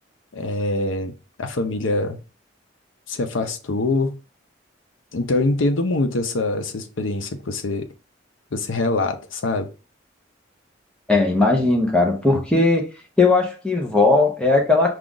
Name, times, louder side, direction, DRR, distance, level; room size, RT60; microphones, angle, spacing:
voice 1, 0.3-1.1 1.4-2.2 3.1-4.1 5.1-7.8 8.5-9.7, left 2 dB, 85° left, 0.7 m, -24 dB
voice 2, 11.1-12.9 13.2-15.0, left 3 dB, 5° left, 0.8 m, -18 dB
4.8 x 2.4 x 3.8 m
head